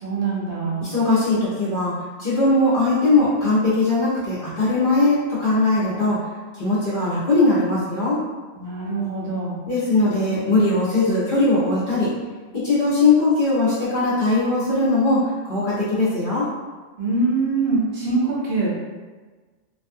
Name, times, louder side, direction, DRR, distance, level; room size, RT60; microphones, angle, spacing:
voice 1, 0.0-0.9 8.5-9.5 17.0-18.7, right 3 dB, 60° right, -6 dB, 0.9 m, -23 dB
voice 2, 0.8-6.3 6.5-8.2 9.7-12.1 12.5-16.5, left 2 dB, 45° left, -10 dB, 0.9 m, -20 dB
2.5 x 2.3 x 2.6 m, 1.3 s
omnidirectional pair, 1.3 m